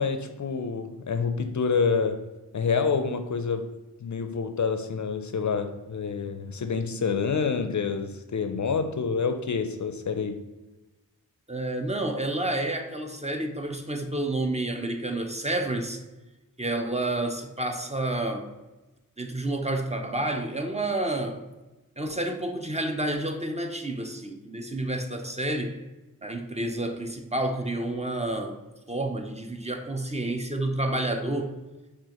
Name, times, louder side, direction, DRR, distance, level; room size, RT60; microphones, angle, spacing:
voice 1, 0.0-10.4, left 5 dB, 55° left, 8 dB, 0.4 m, -28 dB
voice 2, 11.5-16.0 16.6-18.5 19.2-21.4 22.0-25.8 26.2-28.6 28.9-31.5, right 1 dB, 20° right, 4 dB, 0.5 m, -29 dB
6.2 x 2.5 x 2.9 m, 1.1 s
wide cardioid pair, 45°, 36 cm